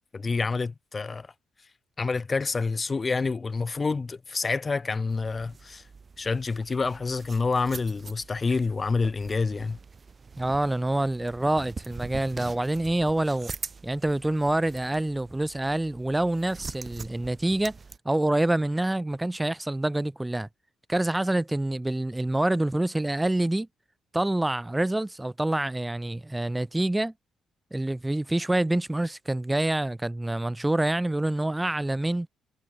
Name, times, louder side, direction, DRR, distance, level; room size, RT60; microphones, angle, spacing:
voice 1, 0.1-1.3 2.0-5.8 6.2-9.8, left 4 dB, 30° left, 1.8 m, -28 dB
sound 1, 5.1-18.0, right 4 dB, 35° right, 6.9 m, -44 dB
voice 2, 10.4-13.5 13.8-17.8 18.0-20.5 20.9-23.7 24.1-27.1 27.7-32.3, right 1 dB, 10° right, 1.3 m, -26 dB
cardioid pair, 90°, 0 cm